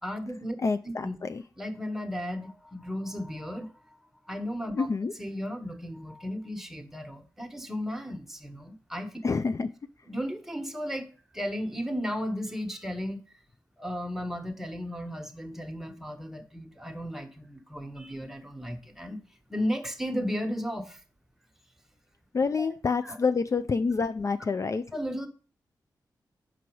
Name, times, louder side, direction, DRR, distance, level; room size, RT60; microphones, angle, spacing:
voice 1, 0.0-0.6 0.8-1.2 1.6-3.9 4.3-4.9 5.2-9.2 10.1-11.1 11.3-13.2 13.8-19.2 19.5-21.0 22.6-22.7 23.0-23.2 24.9-25.3, equal, 5° right, 5 dB, 1.2 m, -34 dB
voice 2, 0.6-1.4 4.7-5.1 9.2-9.7 22.3-24.8, left 4 dB, 40° left, 10 dB, 0.4 m, -27 dB
6.1 x 4.6 x 4.6 m, 0.39 s
cardioid pair, 50°, 8 cm